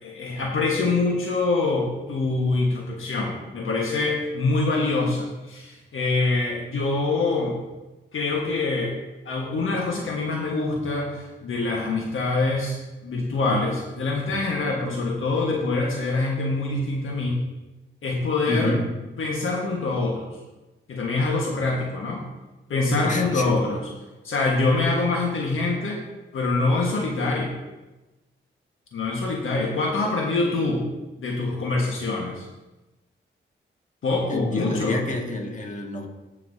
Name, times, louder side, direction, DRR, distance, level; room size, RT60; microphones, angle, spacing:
voice 1, 0.0-7.5 8.1-8.9 9.2-17.4 18.0-18.7 19.2-20.3 20.9-22.2 22.7-23.8 24.2-26.0 26.3-27.5 28.9-30.8 31.2-32.5 34.0-35.0, left 3 dB, 75° left, -2 dB, 1.4 m, -25 dB
voice 2, 18.5-18.9 23.0-23.7 34.3-36.1, left 1 dB, 35° left, 0 dB, 1.9 m, -28 dB
16.0 x 5.8 x 2.7 m, 1.1 s
cardioid pair, 60°, 21 cm